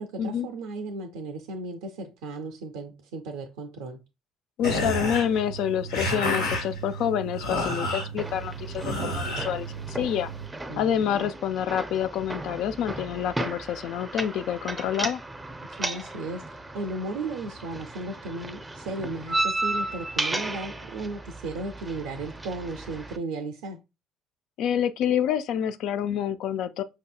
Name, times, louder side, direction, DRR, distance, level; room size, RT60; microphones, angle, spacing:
voice 1, 0.0-4.0 10.7-11.3 15.8-23.8, right 2 dB, 75° right, 0.4 m, -35 dB
sound 1, 4.6-10.5, equal, 85° left, 1.5 m, -31 dB
voice 2, 4.6-10.3 10.8-15.2 24.6-26.8, left 9 dB, 65° left, 0.3 m, -27 dB
sound 2, 8.2-23.2, right 2 dB, 15° right, 0.5 m, -34 dB
5.1 x 2.7 x 2.3 m
hypercardioid pair, 60°, 0 cm